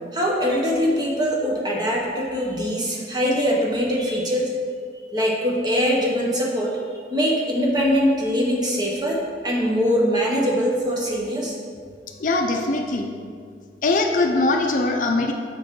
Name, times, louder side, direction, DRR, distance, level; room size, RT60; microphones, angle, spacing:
voice 1, 0.1-4.5 5.1-6.8 7.1-9.2 9.4-11.5, equal, 25° right, -2 dB, 0.9 m, -22 dB
voice 2, 12.2-13.1 13.8-15.3, left 2 dB, 45° left, 3 dB, 0.5 m, -21 dB
6.9 x 4.8 x 3.7 m, 2.1 s
head